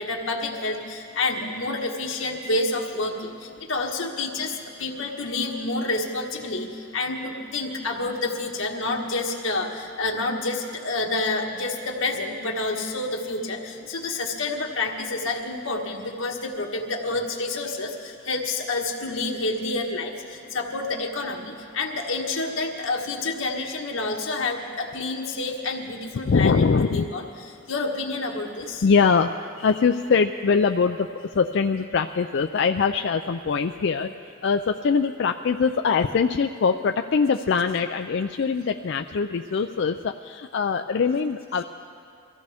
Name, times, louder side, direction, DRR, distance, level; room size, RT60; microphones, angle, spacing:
voice 1, 0.0-27.3 27.7-28.8, left 2 dB, 90° left, 1 dB, 1.6 m, -28 dB
voice 2, 26.3-27.1 28.8-34.1 34.4-41.6, left 5 dB, 60° left, 6 dB, 0.4 m, -23 dB
23.5 x 15.0 x 3.5 m, 2.6 s
head